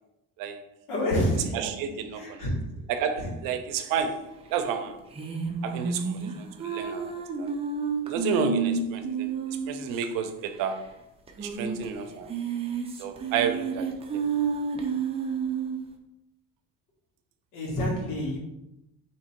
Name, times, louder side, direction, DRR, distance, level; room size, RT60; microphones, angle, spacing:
voice 1, 0.9-2.7 3.2-3.3 3.8-3.9 17.5-18.4, equal, 75° left, 1.6 m, -29 dB
voice 2, 1.5-2.5 2.9-5.0 5.6-7.6 8.1-10.9 11.4-12.4 13.0-13.9, right 6 dB, 80° right, 0.6 m, -31 dB
sound 1, 5.1-10.0 10.3-10.4 10.6-10.7 11.3-11.8 12.2-15.8, right 5 dB, 20° right, 0.5 m, -30 dB
3.7 x 3.0 x 4.3 m
cardioid pair, 145°, 33 cm